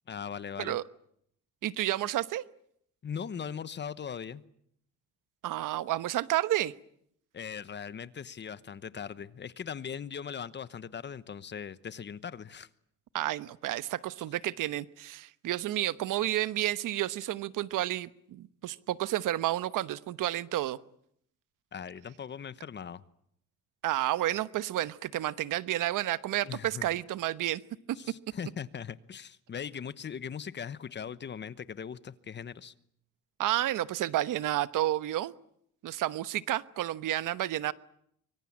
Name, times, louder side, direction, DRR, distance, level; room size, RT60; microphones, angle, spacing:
voice 1, 0.1-0.8 3.0-4.4 7.3-12.7 21.7-23.0 26.4-26.9 27.9-32.7, left 7 dB, 35° left, 16 dB, 1.1 m, -40 dB
voice 2, 1.6-2.4 5.4-6.7 13.1-20.8 23.8-27.6 33.4-35.3 35.8-37.7, right 14 dB, 75° right, 15 dB, 1.1 m, -31 dB
25.0 x 24.5 x 8.7 m, 0.70 s
cardioid pair, 140°, 32 cm